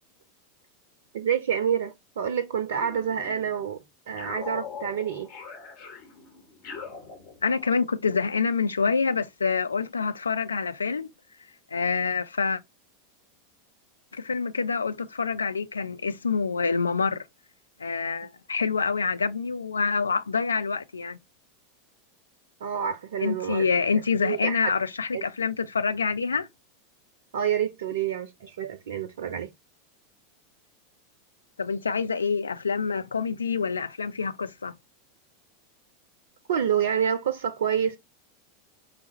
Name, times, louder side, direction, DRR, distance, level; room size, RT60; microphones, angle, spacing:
voice 1, 1.1-5.3 22.6-23.7 24.2-24.7 25.1-25.2 27.3-29.5 36.5-38.0, right 8 dB, 65° right, 0.4 m, -28 dB
sound 1, 2.7-3.7 4.2-7.8, left 6 dB, 50° left, 1.2 m, -42 dB
voice 2, 7.4-11.1 11.7-12.6 14.1-17.2 17.8-21.2 23.2-26.5 31.6-34.7, left 5 dB, 80° left, 0.3 m, -26 dB
4.9 x 2.3 x 2.9 m
figure-of-eight pair, 85°, 0 cm